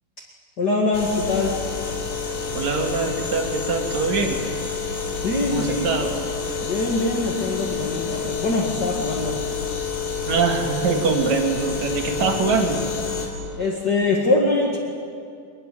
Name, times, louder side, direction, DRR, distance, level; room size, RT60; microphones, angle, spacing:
voice 1, 0.6-1.6 5.2-5.9 6.6-9.4 12.2-12.3 13.6-14.8, left 2 dB, 35° left, -2 dB, 2.1 m, -23 dB
sound 1, 0.9-13.3, left 5 dB, 90° left, 5.2 m, -28 dB
voice 2, 2.5-4.4 5.5-6.1 8.0-8.2 10.3-12.8, right 4 dB, 55° right, 3 dB, 3.0 m, -23 dB
23.5 x 20.0 x 7.8 m, 2.4 s
omnidirectional pair, 4.0 m